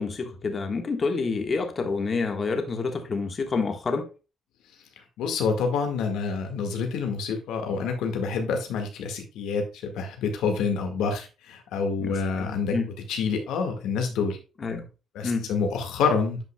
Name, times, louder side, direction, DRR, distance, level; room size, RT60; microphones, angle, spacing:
voice 1, 0.0-4.1 12.0-12.9 14.6-14.8 15.2-15.5, left 4 dB, 40° left, 1.4 m, -28 dB
voice 2, 5.2-12.7 13.1-14.4 15.2-16.4, left 5 dB, 85° left, 1.8 m, -27 dB
10.5 x 5.6 x 2.3 m
cardioid pair, 90°, 0 cm